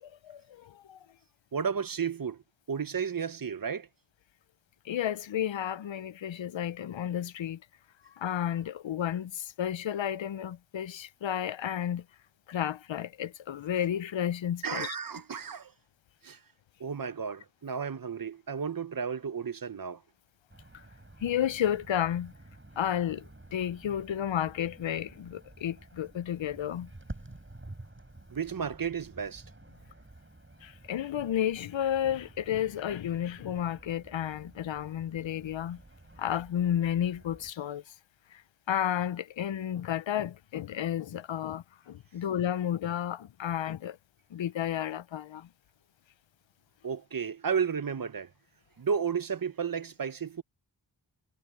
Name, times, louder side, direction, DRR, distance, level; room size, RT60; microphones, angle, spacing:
voice 1, 0.0-1.0 4.8-7.6 8.1-12.0 12.5-15.0 20.7-20.8 21.2-22.3 22.8-26.9 30.6-35.8 36.2-37.9 38.3-38.4 38.7-44.0 44.3-45.5, left 10 dB, 75° left, 0.7 m, -32 dB
voice 2, 1.5-2.4 2.7-3.9 14.6-15.7 16.2-16.4 16.8-20.0 28.3-29.4 46.8-48.3 48.8-50.4, right 6 dB, 45° right, 0.9 m, -33 dB
sound 1, 20.5-37.5, right 2 dB, 25° right, 7.8 m, -51 dB
cardioid pair, 50°, 46 cm